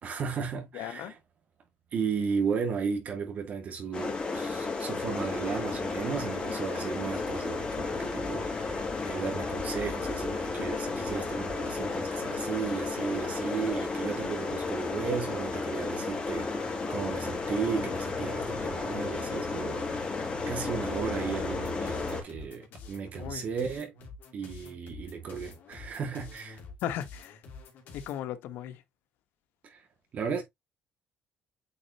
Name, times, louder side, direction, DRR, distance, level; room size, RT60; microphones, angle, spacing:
voice 1, 0.0-1.1 1.9-23.9 24.3-26.6 29.6-29.9 30.1-30.4, right 6 dB, 50° right, 1.9 m, -35 dB
voice 2, 0.7-1.1 23.2-23.4 26.8-27.4 27.9-28.8, left 11 dB, 85° left, 1.1 m, -36 dB
sound 1, 3.9-22.2, left 3 dB, 30° left, 2.7 m, -33 dB
sound 2, 21.4-28.2, left 4 dB, 65° left, 2.5 m, -48 dB
8.6 x 4.3 x 2.8 m
cardioid pair, 120°, 3 cm